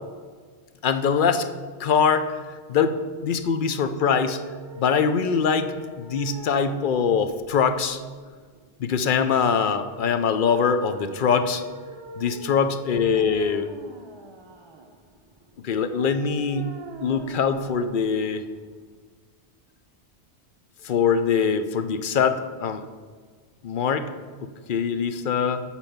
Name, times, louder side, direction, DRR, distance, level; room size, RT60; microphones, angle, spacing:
voice 1, 0.8-1.5 1.8-2.3 2.7-3.0 3.2-4.4 4.8-8.0 8.8-11.6 12.2-13.7 15.6-16.7 17.0-18.4 20.8-22.8 23.6-24.1 24.7-25.6, left 6 dB, 55° left, 9 dB, 0.7 m, -23 dB
sound 1, 4.0-19.0, right 2 dB, 30° right, 0.6 m, -43 dB
8.9 x 4.5 x 7.2 m, 1.5 s
omnidirectional pair, 1.2 m